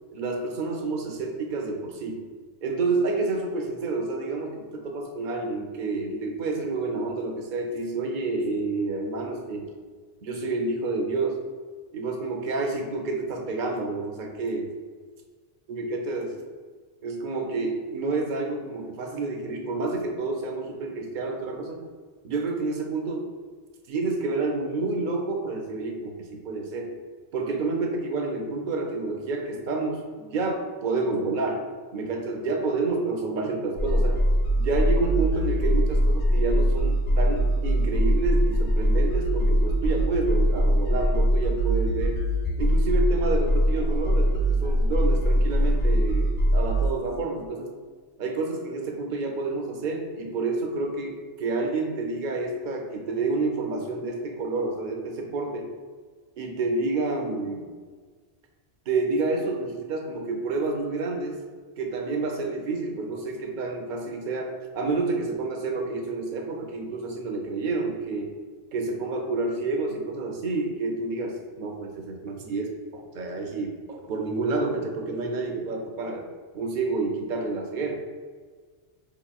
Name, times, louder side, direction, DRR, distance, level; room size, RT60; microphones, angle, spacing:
voice 1, 0.1-2.2 2.6-9.6 10.2-11.4 11.9-14.7 15.7-16.4 17.0-21.8 22.2-23.3 23.9-26.9 27.3-31.6 31.9-34.2 34.6-42.2 42.6-47.7 48.2-55.7 56.4-57.7 58.9-61.4 61.8-68.3 68.7-76.2 76.5-78.0, right 3 dB, 55° right, 2 dB, 0.6 m, -29 dB
sound 1, 33.8-46.9, equal, 60° left, 0.6 m, -22 dB
4.6 x 2.9 x 2.3 m, 1.5 s
omnidirectional pair, 1.1 m